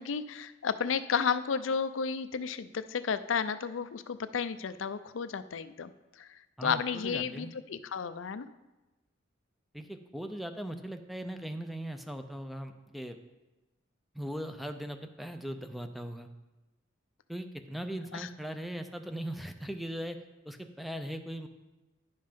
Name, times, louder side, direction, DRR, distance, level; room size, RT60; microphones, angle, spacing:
voice 1, 0.0-5.9 6.2-6.3 6.6-8.5 18.1-18.3, left 6 dB, 75° left, 12 dB, 0.5 m, -32 dB
voice 2, 6.6-7.5 9.7-13.2 14.1-16.3 17.3-20.2 20.5-21.5, equal, ahead, 7 dB, 0.5 m, -39 dB
10.5 x 5.5 x 5.2 m, 1.1 s
head